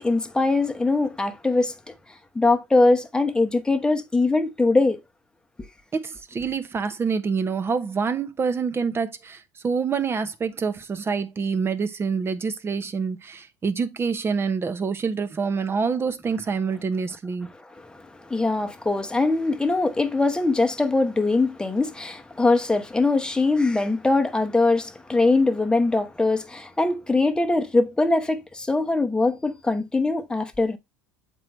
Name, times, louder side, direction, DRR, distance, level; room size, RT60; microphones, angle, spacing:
voice 1, 0.0-1.9 2.3-5.0 17.7-30.8, left 3 dB, 10° left, 1.0 m, -22 dB
voice 2, 5.9-17.5, right 5 dB, 25° right, 0.9 m, -26 dB
7.5 x 4.6 x 3.2 m
supercardioid pair, 105°, 9 cm